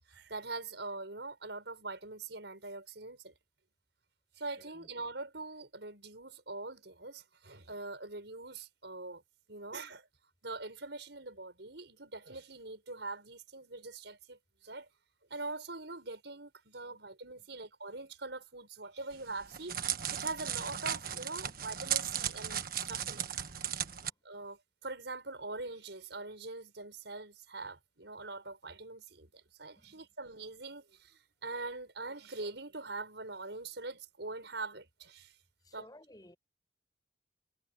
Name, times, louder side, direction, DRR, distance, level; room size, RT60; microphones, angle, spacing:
voice 1, 0.1-3.3 4.4-9.2 9.5-10.1 10.4-14.9 15.3-19.8 20.1-23.3 24.2-35.4 35.7-35.9, right 3 dB, 70° right, 5.6 m, -43 dB
voice 2, 4.6-4.9 16.8-17.0 17.4-17.5 23.9-24.2 25.4-25.5 29.8-30.1 35.6-36.4, left 1 dB, 20° left, 6.8 m, -58 dB
Crackle, 19.1-24.1, right 10 dB, 50° right, 1.5 m, -36 dB
head